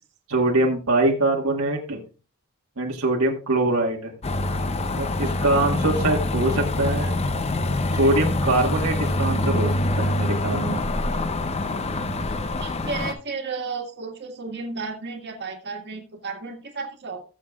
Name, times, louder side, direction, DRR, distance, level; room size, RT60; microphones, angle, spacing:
voice 1, 0.3-2.0 2.8-4.1 5.0-7.1 7.9-10.8, right 2 dB, 70° right, 0 dB, 1.6 m, -23 dB
sound 1, 4.2-13.1, left 2 dB, 30° left, 0.7 m, -25 dB
voice 2, 12.6-17.2, right 4 dB, 55° right, 2 dB, 1.8 m, -33 dB
18.5 x 7.5 x 2.4 m, 0.36 s
head